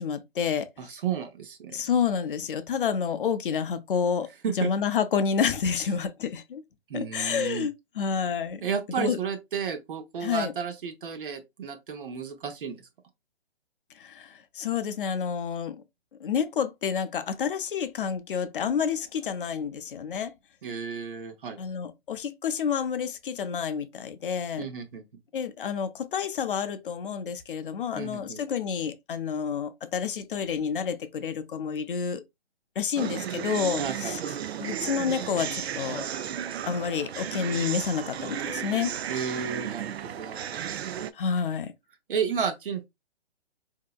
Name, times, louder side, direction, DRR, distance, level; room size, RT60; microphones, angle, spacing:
voice 1, 0.0-0.7 1.7-4.3 4.6-6.6 6.9-9.2 10.2-10.5 14.0-15.8 16.2-20.3 21.6-24.7 25.3-32.2 32.8-34.2 34.6-36.1 36.7-39.0 41.1-41.7, left 7 dB, 55° left, 0.6 m, -29 dB
voice 2, 0.8-1.8 4.4-4.7 6.9-7.7 8.6-12.8 20.6-21.6 24.6-25.0 28.0-28.4 33.8-34.2 39.1-40.6 42.1-42.9, right 6 dB, 50° right, 0.8 m, -32 dB
sound 1, 33.0-41.1, right 9 dB, 70° right, 0.5 m, -34 dB
3.9 x 2.8 x 2.2 m
hypercardioid pair, 150°, 33 cm